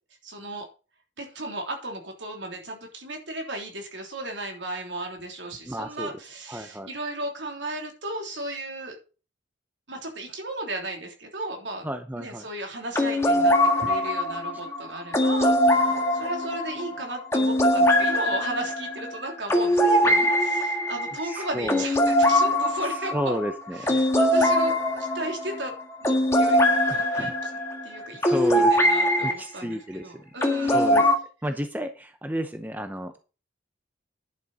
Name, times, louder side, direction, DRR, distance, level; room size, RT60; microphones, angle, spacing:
voice 1, 0.2-0.7 1.2-9.0 9.9-11.9 12.2-23.4 23.7-24.7 25.0-25.7 26.0-26.6 26.9-27.5 27.8-28.4 28.7-31.1, right 1 dB, 70° right, 2 dB, 3.2 m, -35 dB
voice 2, 5.7-6.1 6.5-6.9 11.8-12.4 21.2-21.9 23.0-24.0 26.9-27.3 28.2-28.8 29.2-30.3 30.6-31.1 31.4-33.1, equal, 10° right, 7 dB, 0.7 m, -32 dB
sound 1, 12.9-29.3 30.4-31.2, left 1 dB, 15° left, 1.7 m, -22 dB
11.0 x 6.7 x 5.4 m, 0.34 s
head